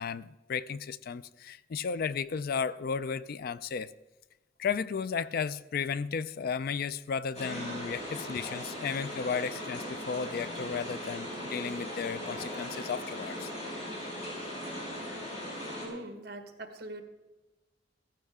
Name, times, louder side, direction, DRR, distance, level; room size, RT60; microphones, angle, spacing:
voice 1, 0.0-3.9 4.6-13.5, left 6 dB, 50° left, 16 dB, 0.4 m, -34 dB
sound 1, 7.3-15.9, equal, 35° left, 5.3 m, -39 dB
Gasp, 7.3-7.9, right 2 dB, 40° right, 0.8 m, -45 dB
voice 2, 15.8-17.0, right 1 dB, 60° right, 6 dB, 1.4 m, -42 dB
15.0 x 14.0 x 3.6 m, 1.1 s
head